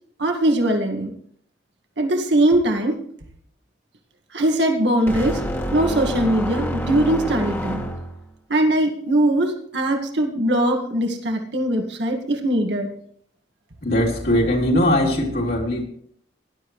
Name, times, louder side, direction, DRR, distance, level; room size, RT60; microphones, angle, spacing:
voice 1, 0.2-1.1 2.0-3.0 4.3-5.4 5.7-7.8 8.5-12.9, right 1 dB, 75° right, 2 dB, 1.9 m, -21 dB
sound 1, 5.1-8.3, equal, 10° left, 1.7 m, -27 dB
voice 2, 13.8-15.8, left 1 dB, 55° left, -1 dB, 3.3 m, -20 dB
18.5 x 12.0 x 3.2 m, 0.64 s
head